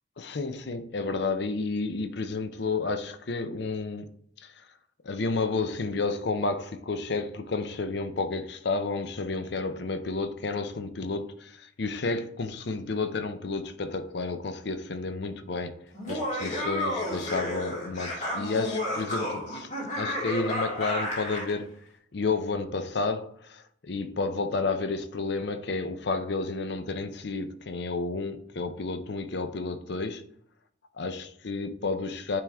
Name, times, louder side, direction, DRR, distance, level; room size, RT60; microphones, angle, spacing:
voice 1, 0.2-4.1 4.4-4.7 5.0-21.8 22.1-30.3 31.0-32.4, left 3 dB, 55° left, 0.6 m, -31 dB
Laughter, 15.9-21.5, left 1 dB, 40° left, 1.9 m, -31 dB
8.6 x 3.5 x 3.5 m
head